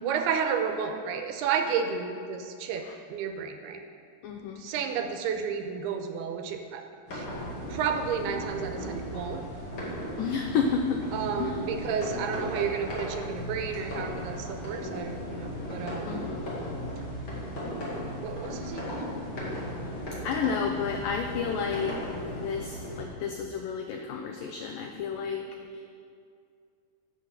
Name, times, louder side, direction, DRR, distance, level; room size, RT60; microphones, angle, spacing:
voice 1, 0.0-3.8 4.6-6.9 7.1-7.3 7.7-9.4 11.1-16.2 18.2-19.1, right 6 dB, 85° right, 5 dB, 2.6 m, -32 dB
voice 2, 4.2-4.6 10.2-11.0 11.4-11.6 16.0-16.5 20.2-25.9, left 6 dB, 85° left, 4 dB, 1.9 m, -31 dB
sound 1, 7.1-23.0, equal, 35° left, 2.5 m, -36 dB
9.9 x 7.7 x 6.6 m, 2.3 s
omnidirectional pair, 4.7 m